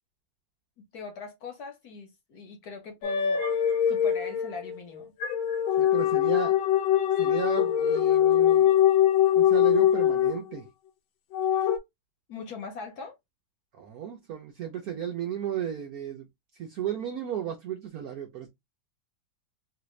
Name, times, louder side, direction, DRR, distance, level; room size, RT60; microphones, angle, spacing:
voice 1, 0.9-3.4 3.9-5.1 12.3-13.2, left 4 dB, 60° left, 1.1 m, -41 dB
sound 1, 3.0-10.6 11.3-11.8, left 10 dB, 80° left, 1.4 m, -23 dB
voice 2, 5.8-6.6 7.1-8.7 9.4-10.7 13.7-16.3 16.6-18.5, right 9 dB, 70° right, 0.9 m, -34 dB
3.2 x 2.5 x 3.0 m
omnidirectional pair, 2.2 m